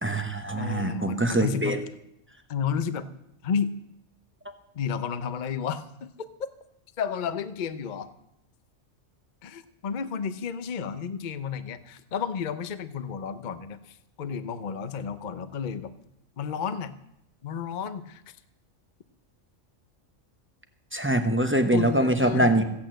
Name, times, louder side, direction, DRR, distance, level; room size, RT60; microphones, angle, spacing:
voice 1, 0.0-1.8 20.9-22.6, right 1 dB, 10° right, 7 dB, 0.9 m, -23 dB
voice 2, 0.6-1.8 2.5-3.1 3.4-3.7 4.7-6.1 7.0-8.1 9.4-15.9 16.4-16.9 17.4-18.2 21.7-22.6, left 7 dB, 45° left, 12 dB, 0.8 m, -32 dB
15.0 x 8.7 x 7.6 m, 0.81 s
omnidirectional pair, 1.3 m